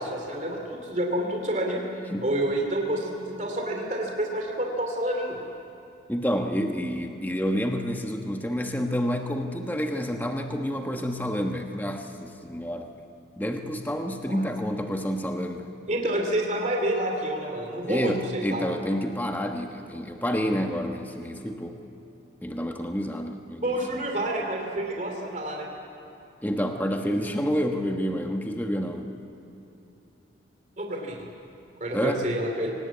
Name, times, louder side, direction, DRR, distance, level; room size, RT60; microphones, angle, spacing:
voice 1, 0.0-1.8 2.2-5.4 14.1-14.5 15.9-18.7 23.6-25.7 30.8-31.2 31.8-32.7, right 1 dB, 40° right, 1 dB, 2.8 m, -28 dB
voice 2, 6.1-12.9 13.4-15.7 17.9-21.8 22.4-24.0 26.4-29.1 31.9-32.3, equal, 10° left, 3 dB, 1.2 m, -29 dB
24.0 x 19.0 x 8.5 m, 3.0 s
head